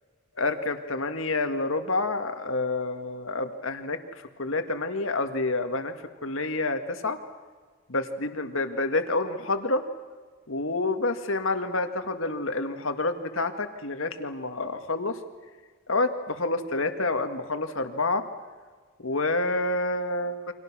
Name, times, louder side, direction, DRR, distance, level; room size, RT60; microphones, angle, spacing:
voice 1, 0.4-4.0 4.4-5.9 6.2-7.2 7.9-9.8 10.5-15.2 15.9-18.2 19.0-20.4, left 2 dB, 65° left, 7 dB, 2.0 m, -28 dB
30.0 x 25.5 x 6.2 m, 1.5 s
head